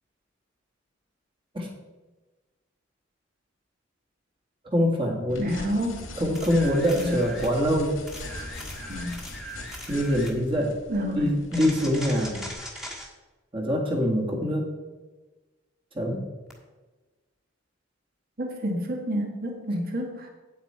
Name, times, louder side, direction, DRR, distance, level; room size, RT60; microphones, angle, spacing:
voice 1, 4.6-5.7 6.2-8.0 9.9-10.8 11.1-12.4 13.5-14.7 15.9-16.2, equal, 25° right, 0 dB, 1.9 m, -24 dB
sound 1, 5.3-12.5, left 2 dB, 90° left, 1.9 m, -41 dB
voice 2, 5.4-6.0 6.9-7.2 8.9-9.2 10.9-11.3 18.4-20.3, equal, 50° right, 2 dB, 1.6 m, -29 dB
sound 2, 6.4-7.6 8.1-10.4 11.5-13.1 16.5-16.6, equal, ahead, 1.5 m, -40 dB
8.8 x 8.3 x 4.4 m, 1.2 s
head